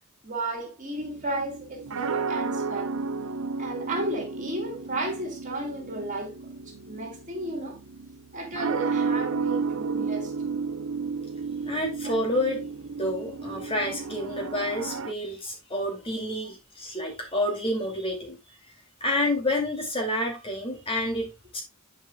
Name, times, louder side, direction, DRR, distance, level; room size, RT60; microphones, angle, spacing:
voice 1, 0.2-2.9 3.6-6.3 6.8-7.8 8.3-10.3 12.0-12.1, right 1 dB, 35° right, 3.4 m, -33 dB
sound 1, 1.0-15.1, right 4 dB, 75° right, 0.6 m, -32 dB
voice 2, 11.6-12.6 13.0-18.4 19.0-21.6, left 1 dB, 25° left, 2.4 m, -29 dB
11.0 x 5.6 x 2.2 m
head